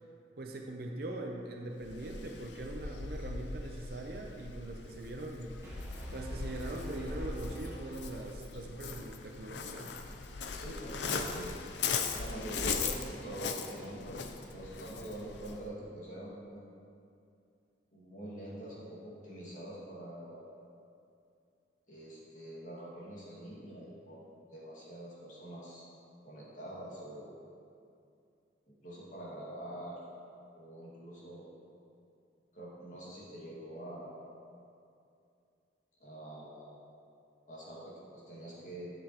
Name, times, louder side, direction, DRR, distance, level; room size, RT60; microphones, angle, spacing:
voice 1, 0.4-5.6 6.1-9.9, right 1 dB, 55° right, 1 dB, 0.6 m, -42 dB
Waves surf, 1.8-15.7, left 5 dB, 70° left, 0.5 m, -39 dB
Brass instrument, 5.6-8.7, right 1 dB, 15° right, 1.1 m, -47 dB
voice 2, 10.5-11.6 12.1-16.6 17.9-20.5 21.9-25.8 26.2-27.5 28.7-30.0 30.5-31.5 32.5-34.2 36.0-36.7 37.5-38.9, right 1 dB, 45° left, -7 dB, 1.9 m, -45 dB
10.5 x 6.9 x 3.0 m, 2.5 s
head